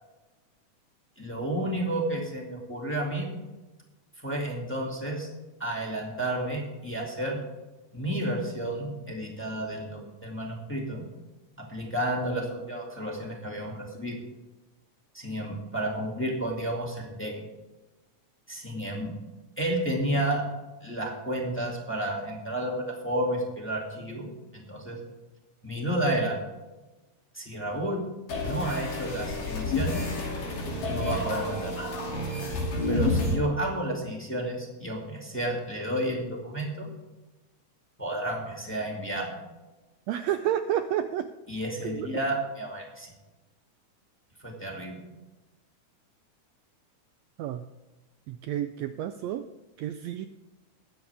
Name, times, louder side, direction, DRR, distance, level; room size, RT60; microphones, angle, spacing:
voice 1, 1.2-3.3 4.2-5.3 5.6-7.4 7.9-11.0 11.7-14.2 15.1-17.5 18.5-19.1 19.6-20.4 20.8-24.3 24.5-25.0 25.6-26.4 27.3-28.0 28.4-30.2 30.9-32.0 32.9-36.9 38.0-39.4 41.5-43.1 44.4-45.1, right 1 dB, 5° left, -1 dB, 1.9 m, -31 dB
sound 1, 28.3-33.3, left 2 dB, 85° left, 4.3 m, -29 dB
voice 2, 40.1-41.3 41.8-42.1 47.4-47.7 48.3-49.4 49.8-50.3, right 11 dB, 85° right, 9 dB, 1.5 m, -30 dB
20.5 x 7.8 x 3.5 m, 1.1 s
omnidirectional pair, 3.6 m